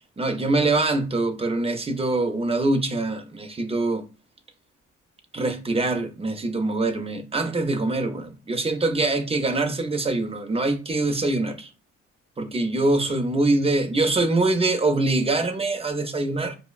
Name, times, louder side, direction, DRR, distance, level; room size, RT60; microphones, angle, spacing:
voice 1, 0.2-4.1 5.3-11.7 12.4-16.6, right 2 dB, 20° right, 0.5 m, -24 dB
4.8 x 2.0 x 2.4 m
cardioid pair, 90°, 30 cm